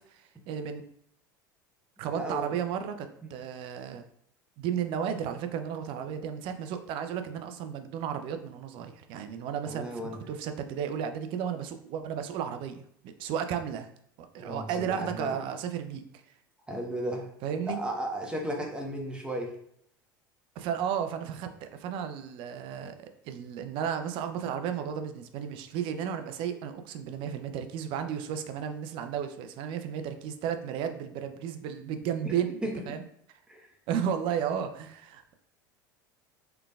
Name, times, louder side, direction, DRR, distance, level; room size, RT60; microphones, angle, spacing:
voice 1, 0.1-0.8 2.0-4.0 4.6-13.9 14.2-16.2 17.4-17.8 20.6-32.6 32.9-33.0 33.9-35.4, right 8 dB, 55° right, 8 dB, 0.5 m, -33 dB
voice 2, 2.1-2.5 3.2-3.3 9.7-10.2 14.4-15.4 16.7-17.3 17.6-19.5 32.2-32.3 32.6-32.7 33.5-33.7, right 1 dB, 10° right, 0 dB, 1.0 m, -34 dB
3.7 x 3.4 x 2.3 m, 0.68 s
hypercardioid pair, 80°, 11 cm